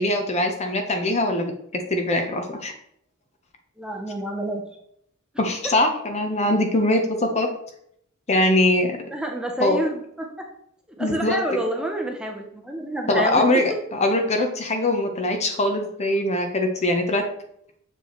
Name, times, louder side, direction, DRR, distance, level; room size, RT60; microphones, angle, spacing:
voice 1, 0.0-2.7 5.4-7.5 8.3-9.0 9.6-9.8 11.0-11.4 13.1-17.2, left 1 dB, 30° left, 4 dB, 0.7 m, -22 dB
voice 2, 3.8-4.6 9.1-10.5 11.0-13.4, right 1 dB, 5° right, 1 dB, 0.7 m, -28 dB
7.1 x 4.5 x 3.0 m, 0.71 s
head